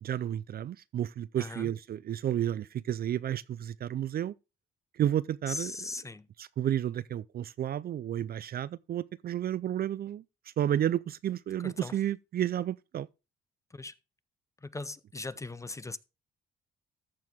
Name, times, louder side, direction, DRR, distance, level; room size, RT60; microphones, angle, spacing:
voice 1, 0.0-4.3 4.9-5.7 6.4-10.2 10.6-13.1, right 11 dB, 50° right, 0.4 m, -31 dB
voice 2, 1.4-1.7 5.5-6.3 11.6-11.9 13.7-13.9 14.6-16.0, left 3 dB, 15° left, 0.5 m, -39 dB
14.0 x 4.6 x 3.5 m
cardioid pair, 90°, 20 cm